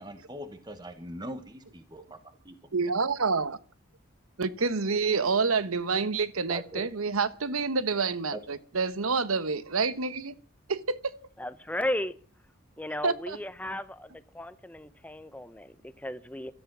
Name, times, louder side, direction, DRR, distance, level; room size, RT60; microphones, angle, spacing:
voice 1, 0.0-2.5 6.5-6.9 8.3-8.4, equal, 20° right, 1.3 m, -41 dB
voice 2, 2.7-3.6 4.4-10.3 10.7-11.0 13.0-13.4, right 4 dB, 90° right, 1.1 m, -28 dB
voice 3, 11.4-12.2 12.8-16.5, left 1 dB, 5° left, 0.8 m, -35 dB
17.5 x 13.5 x 6.1 m
head